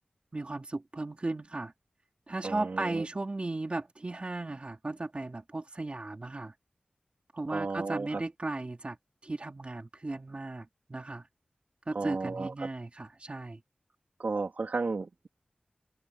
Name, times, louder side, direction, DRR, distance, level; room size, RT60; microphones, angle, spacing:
voice 1, 0.3-1.7 2.3-6.5 7.3-9.0 9.2-11.3 11.9-13.6, right 2 dB, 40° right, 3.8 m, -36 dB
voice 2, 2.4-3.0 7.5-8.2 11.9-12.7 14.2-15.3, right 3 dB, 75° right, 3.4 m, -33 dB
wide cardioid pair, 70°, 3 cm